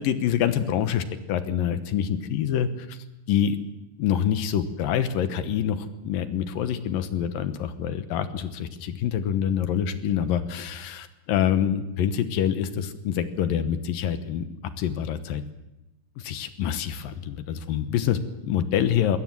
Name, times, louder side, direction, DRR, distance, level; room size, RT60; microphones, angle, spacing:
voice 1, 0.0-3.0 3.3-3.6 4.0-14.5 14.8-15.4 16.2-19.2, left 9 dB, 70° left, 11 dB, 2.6 m, -26 dB
21.0 x 18.0 x 7.6 m, 0.95 s
omnidirectional pair, 4.6 m